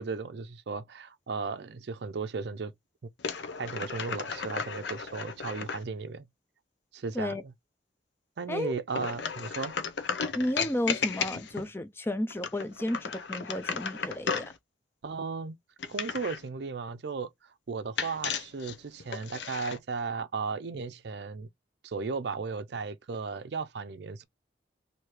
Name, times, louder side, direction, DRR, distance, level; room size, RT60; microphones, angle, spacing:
voice 1, 0.0-2.7 3.6-6.3 6.9-7.4 8.4-9.7 15.0-15.5 15.9-21.5 21.8-24.2, right 4 dB, 65° right, 0.5 m, -35 dB
sound 1, 3.2-5.8 8.9-11.7 12.3-14.6 15.8-16.5 18.0-19.8, left 6 dB, 70° left, 0.6 m, -34 dB
voice 2, 10.3-14.5, left 1 dB, 10° left, 0.4 m, -32 dB
3.1 x 2.7 x 4.3 m
head